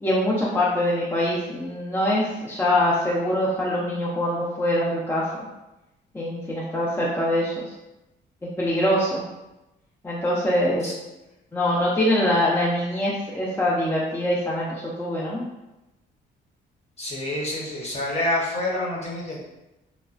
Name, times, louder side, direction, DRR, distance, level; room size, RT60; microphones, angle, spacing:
voice 1, 0.0-5.3 6.1-7.7 8.6-9.2 10.0-10.8 11.5-15.5, left 1 dB, 10° left, -6 dB, 0.5 m, -23 dB
voice 2, 17.0-19.4, left 1 dB, 35° left, -3 dB, 0.8 m, -27 dB
3.0 x 2.2 x 2.4 m, 0.97 s
cardioid pair, 90°, 20 cm